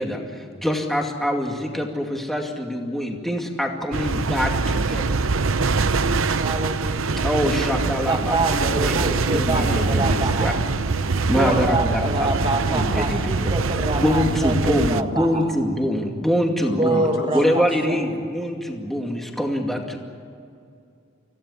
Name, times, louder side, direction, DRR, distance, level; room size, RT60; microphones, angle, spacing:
voice 1, 0.0-5.2 7.2-10.5 11.3-12.3 12.7-13.5 14.0-17.0 17.3-20.0, equal, ahead, 1 dB, 2.3 m, -24 dB
sound 1, 3.9-15.0, right 4 dB, 70° right, 0.8 m, -23 dB
voice 2, 6.4-7.3 7.9-10.6 11.3-15.5 16.8-18.0, right 2 dB, 25° right, 2 dB, 2.0 m, -26 dB
voice 3, 9.5-10.0 11.6-11.8 16.6-17.8, left 2 dB, 65° left, 2 dB, 4.5 m, -36 dB
26.0 x 16.5 x 9.8 m, 2.4 s
head